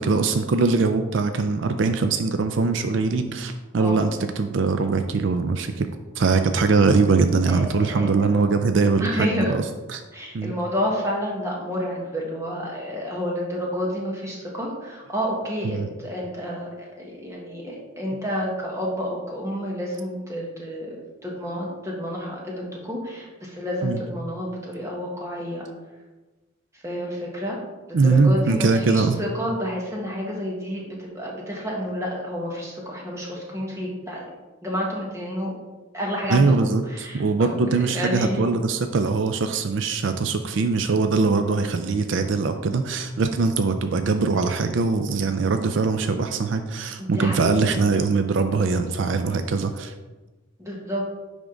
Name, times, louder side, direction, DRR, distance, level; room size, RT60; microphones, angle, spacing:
voice 1, 0.0-4.1 4.4-5.9 6.2-9.6 9.9-10.0 10.3-10.5 15.6-15.9 23.8-24.0 27.9-29.2 36.3-49.9, right 4 dB, 70° right, 8 dB, 0.4 m, -22 dB
voice 2, 7.5-8.4 9.0-9.5 10.1-16.7 17.0-21.0 21.2-25.6 26.8-27.6 27.9-34.2 34.6-35.5 35.9-36.5 36.9-38.5 47.0-47.7 50.6-51.0, equal, 15° right, -2 dB, 1.3 m, -30 dB
10.0 x 3.6 x 3.8 m, 1.2 s
head